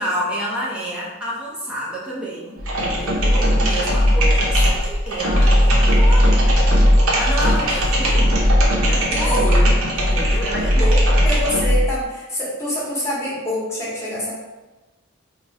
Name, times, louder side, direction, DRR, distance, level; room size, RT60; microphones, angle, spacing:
voice 1, 0.0-6.4 7.1-8.5 8.9-11.3, right 1 dB, 5° right, -6 dB, 0.8 m, -29 dB
sound 1, 2.6-11.9, equal, 80° right, 0.9 m, -17 dB
voice 2, 9.1-9.6 11.2-14.4, left 1 dB, 15° left, -7 dB, 1.1 m, -26 dB
3.0 x 2.4 x 4.1 m, 1.1 s
head